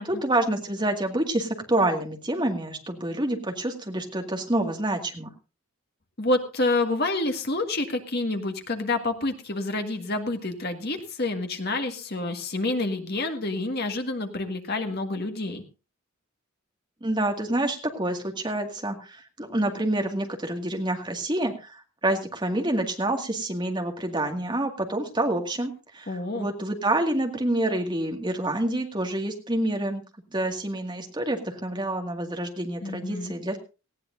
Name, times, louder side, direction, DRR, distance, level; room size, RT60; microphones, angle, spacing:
voice 1, 0.0-5.3 17.0-30.0 30.3-33.6, right 1 dB, 20° right, 3 dB, 2.0 m, -27 dB
voice 2, 6.2-15.6 26.1-26.5 32.8-33.3, left 2 dB, 50° left, 5 dB, 1.8 m, -28 dB
18.5 x 15.5 x 2.6 m, 0.31 s
head